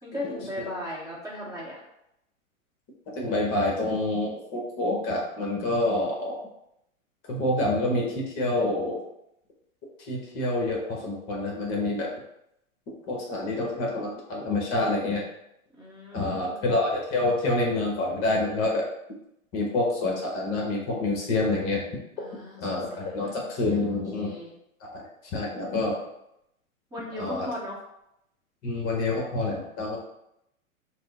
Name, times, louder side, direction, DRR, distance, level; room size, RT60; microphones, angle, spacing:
voice 1, 0.0-1.8 15.8-16.8 22.2-24.5 26.9-27.9, left 1 dB, 10° right, -7 dB, 0.9 m, -38 dB
voice 2, 3.1-6.4 7.3-9.0 10.1-12.1 13.1-15.2 16.1-18.8 19.5-21.8 22.6-24.4 24.9-25.0 25.3-26.0 27.2-27.5 28.6-30.0, left 2 dB, 35° left, -1 dB, 1.1 m, -27 dB
4.7 x 2.1 x 4.0 m, 0.80 s
hypercardioid pair, 130°, 41 cm